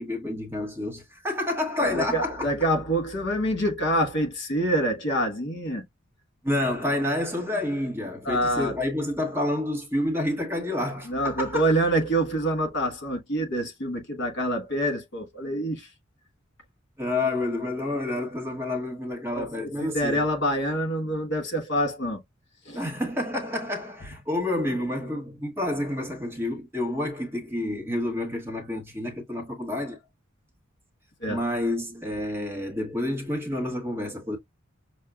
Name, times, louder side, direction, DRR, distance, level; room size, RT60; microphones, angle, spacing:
voice 1, 0.0-2.5 6.4-11.6 17.0-20.2 22.7-30.0 31.3-34.4, left 1 dB, 10° right, 1.0 m, -29 dB
voice 2, 1.8-5.8 8.2-8.7 11.1-15.9 19.3-22.2 22.6-22.8 31.2-31.4, right 1 dB, 55° left, 1.3 m, -26 dB
6.3 x 2.2 x 2.3 m
head